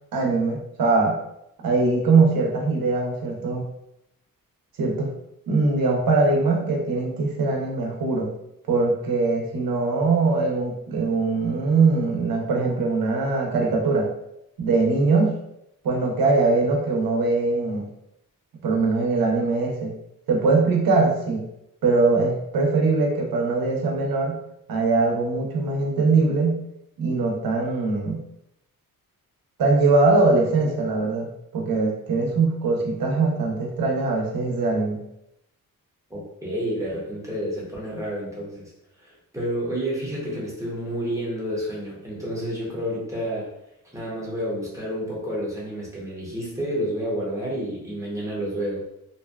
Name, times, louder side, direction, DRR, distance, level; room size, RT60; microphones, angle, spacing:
voice 1, 0.1-1.2 1.6-3.7 4.8-5.1 5.5-8.3 8.7-14.1 14.6-15.4 15.8-17.9 18.6-19.9 20.3-21.5 21.8-24.4 24.7-26.6 27.0-28.2 29.6-35.0, right 3 dB, 75° right, 0 dB, 0.7 m, -22 dB
voice 2, 36.1-38.7 39.0-43.5 43.9-49.0, equal, 10° right, -5 dB, 0.7 m, -30 dB
2.6 x 2.2 x 2.3 m, 0.80 s
wide cardioid pair, 135°, 35 cm